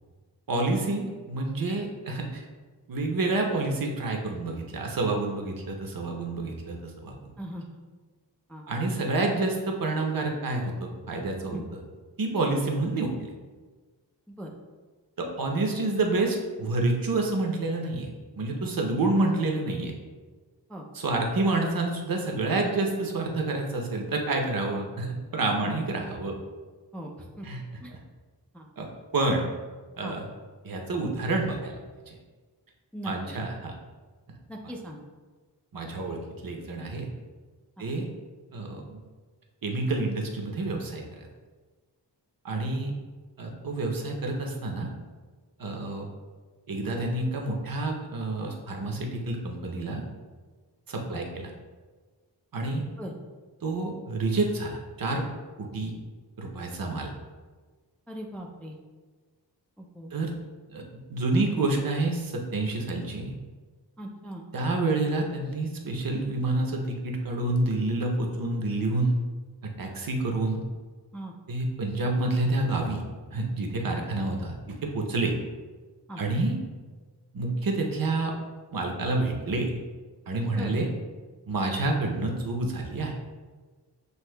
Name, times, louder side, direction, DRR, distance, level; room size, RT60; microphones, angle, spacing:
voice 1, 0.5-2.4 2.9-7.3 8.7-11.6 12.2-13.3 15.2-18.1 18.3-19.9 20.9-26.3 27.4-27.6 28.8-28.9 29.1-29.4 30.0-30.3 30.6-31.8 32.1-32.2 33.0-33.7 35.7-37.1 37.8-38.1 38.5-39.0 39.6-41.3 42.4-42.9 43.4-44.9 45.6-46.1 46.7-50.0 50.9-51.5 52.5-52.8 53.6-55.2 55.6-55.9 56.4-57.1 60.1-60.3 60.7-60.8 61.1-63.3 64.5-69.2 69.6-70.6 71.5-73.0 73.3-75.3 76.2-76.6 77.3-78.3 78.7-79.8 80.3-80.9 81.5-83.1, right 2 dB, 55° right, 1 dB, 0.7 m, -28 dB
voice 2, 7.4-7.8 8.5-8.7 11.5-11.6 14.3-14.5 19.1-19.2 20.7-20.9 25.6-25.8 26.9-27.5 27.8-27.9 28.5-28.7 30.0-30.1 32.9-33.4 34.5-35.0 37.8-37.9 51.1-51.2 53.0-53.1 58.1-58.8 59.8-60.1 64.0-64.4 71.1-71.3 76.1-76.2 80.5-80.7, equal, 5° left, 0 dB, 0.4 m, -39 dB
7.7 x 2.7 x 2.2 m, 1.4 s
wide cardioid pair, 105°, 42 cm